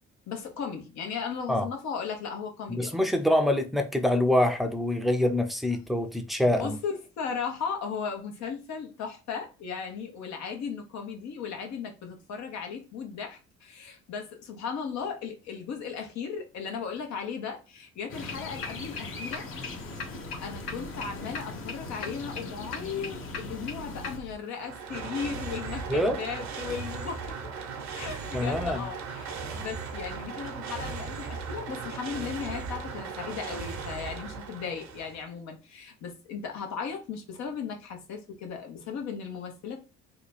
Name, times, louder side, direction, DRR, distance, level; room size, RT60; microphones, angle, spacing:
voice 1, 0.3-2.9 6.4-19.5 20.0-20.1 20.4-27.3 27.9-39.8, left 6 dB, 65° left, 1.1 m, -36 dB
voice 2, 2.7-6.8 25.9-26.2 28.3-28.8, left 1 dB, ahead, 0.6 m, -25 dB
sound 1, 18.1-24.4, left 4 dB, 90° left, 0.7 m, -41 dB
sound 2, 18.1-24.2, left 2 dB, 45° left, 1.0 m, -40 dB
sound 3, 24.4-35.3, right 5 dB, 65° right, 0.9 m, -37 dB
2.9 x 2.3 x 4.1 m
supercardioid pair, 70°, 30 cm